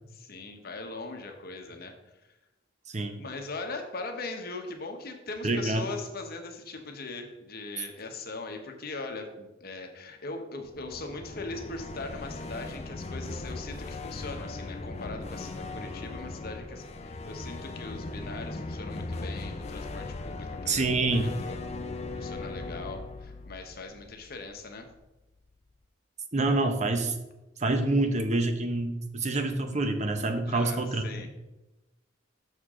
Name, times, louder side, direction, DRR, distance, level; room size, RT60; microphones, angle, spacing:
voice 1, 0.1-1.9 3.2-21.6 22.1-24.9 30.5-31.3, left 3 dB, 55° left, 4 dB, 1.0 m, -40 dB
voice 2, 2.9-3.2 5.4-5.8 20.7-21.3 26.3-27.1 27.6-31.3, right 2 dB, 40° right, 6 dB, 0.7 m, -27 dB
sound 1, 10.6-24.7, left 2 dB, 35° left, 0.5 m, -38 dB
6.7 x 6.5 x 3.7 m, 1.0 s
head